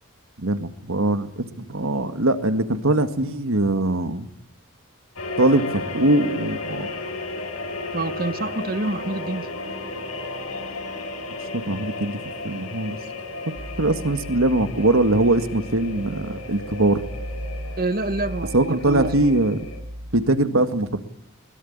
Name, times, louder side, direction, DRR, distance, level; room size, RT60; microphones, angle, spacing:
voice 1, 0.4-4.3 5.4-6.9 11.7-12.2 12.4-13.0 13.8-17.0 18.5-19.7 20.1-21.0, right 2 dB, 70° right, 2.0 m, -21 dB
sound 1, 5.2-19.8, left 2 dB, 80° left, 6.3 m, -34 dB
voice 2, 7.9-9.5 17.8-19.3, right 2 dB, 45° right, 1.3 m, -27 dB
sound 2, 13.5-20.4, equal, 85° right, 1.8 m, -37 dB
22.0 x 21.5 x 8.8 m
head